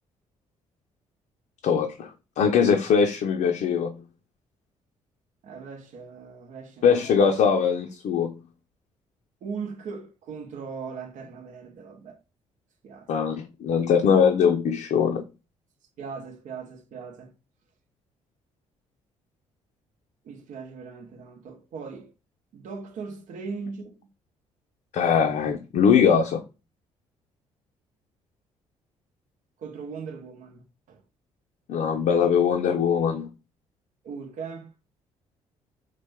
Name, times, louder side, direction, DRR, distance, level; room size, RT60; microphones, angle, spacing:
voice 1, 1.6-2.1 2.4-3.9 6.8-8.3 13.1-15.2 24.9-26.4 31.7-33.3, left 7 dB, 60° left, 0.5 m, -21 dB
voice 2, 5.4-7.0 9.4-12.2 12.8-13.1 16.0-17.3 20.2-22.1 22.5-23.9 29.6-31.0 34.0-34.7, right 5 dB, 65° right, 0.7 m, -39 dB
3.1 x 2.1 x 3.4 m
hypercardioid pair, 55°, 14 cm